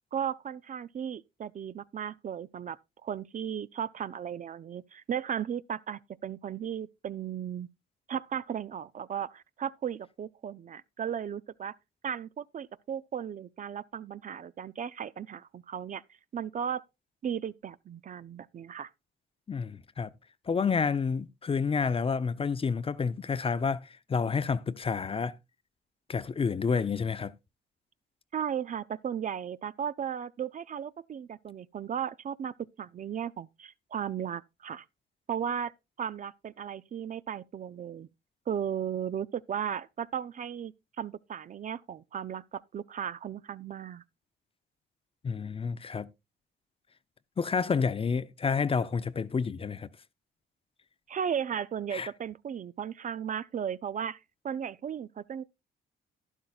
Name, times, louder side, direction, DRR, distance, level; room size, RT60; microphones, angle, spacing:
voice 1, 0.1-7.7 8.1-11.8 12.0-16.0 16.3-16.8 17.2-18.9 28.3-34.9 35.3-35.7 36.0-38.1 38.5-44.0 51.1-54.2 54.4-55.4, right 8 dB, 40° right, 0.4 m, -35 dB
voice 2, 19.5-20.1 20.5-25.4 26.1-27.3 45.2-46.1 47.4-49.9 51.9-52.1, left 5 dB, 30° left, 0.5 m, -29 dB
12.0 x 11.0 x 2.3 m
cardioid pair, 90°, 20 cm